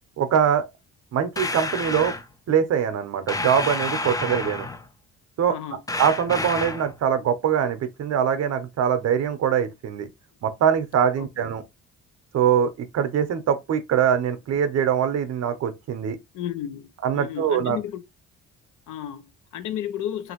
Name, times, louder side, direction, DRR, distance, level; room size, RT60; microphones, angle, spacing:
voice 1, 0.2-0.7 1.1-2.1 2.5-4.7 5.4-5.6 6.0-10.1 10.4-11.6 12.3-16.2 17.0-17.8, right 8 dB, 60° right, 0.7 m, -23 dB
sound 1, 1.4-2.2 3.3-4.9 5.9-6.9, left 2 dB, 10° left, 0.4 m, -29 dB
voice 2, 5.5-5.8 11.2-11.3 16.3-16.9 17.1-18.0 18.9-20.3, left 10 dB, 85° left, 0.6 m, -33 dB
2.9 x 2.6 x 2.8 m
cardioid pair, 90°, 30 cm